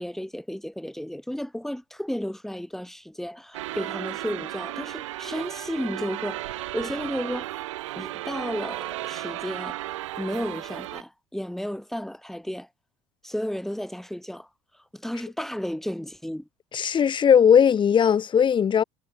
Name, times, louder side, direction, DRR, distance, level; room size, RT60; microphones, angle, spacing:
voice 1, 0.0-7.6 8.0-9.8 10.2-12.7 13.2-14.5 14.9-16.5, equal, ahead, 1.8 m, -33 dB
sound 1, 3.5-11.0, right 16 dB, 80° right, 0.5 m, -34 dB
voice 2, 16.7-18.8, left 8 dB, 30° left, 0.7 m, -18 dB
hypercardioid pair, 65°, 16 cm